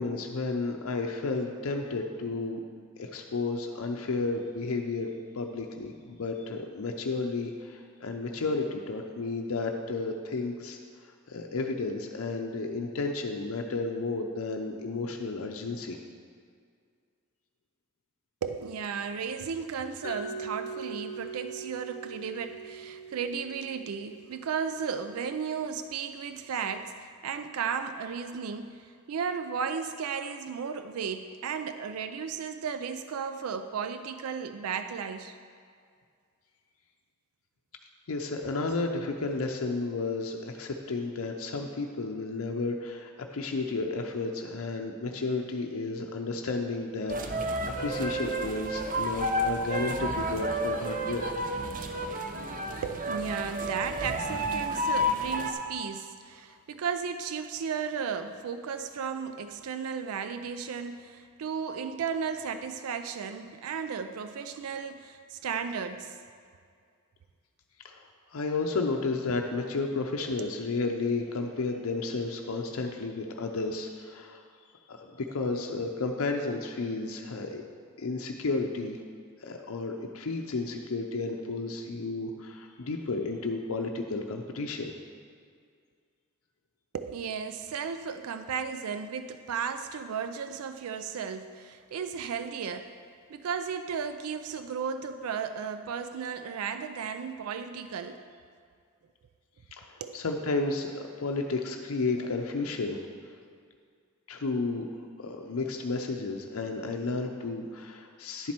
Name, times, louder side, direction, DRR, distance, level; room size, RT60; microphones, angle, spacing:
voice 1, 0.0-2.6 3.0-16.0 38.1-51.3 67.8-74.4 74.9-77.6 78.0-79.0 79.4-84.9 99.7-103.3 104.3-104.9 105.2-108.5, left 3 dB, 70° left, 3 dB, 0.6 m, -32 dB
voice 2, 18.4-35.4 39.4-39.5 52.8-66.2 70.2-70.6 86.9-93.0 93.3-98.2 100.0-100.2, right 6 dB, 85° right, 9 dB, 0.4 m, -34 dB
Mallet percussion, 20.0-25.9, right 4 dB, 40° left, 0.8 m, -42 dB
sound 1, 47.1-55.5, equal, 40° right, 0.7 m, -31 dB
10.5 x 7.4 x 4.4 m, 2.2 s
head